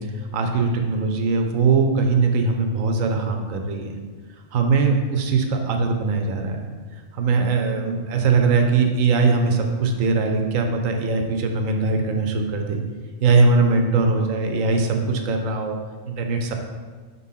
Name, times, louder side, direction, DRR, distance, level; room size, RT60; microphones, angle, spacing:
voice 1, 0.3-3.9 4.5-6.6 7.1-12.8 13.2-15.8 16.1-16.5, right 4 dB, 80° right, 4 dB, 1.1 m, -21 dB
5.5 x 4.1 x 5.4 m, 1.4 s
omnidirectional pair, 1.4 m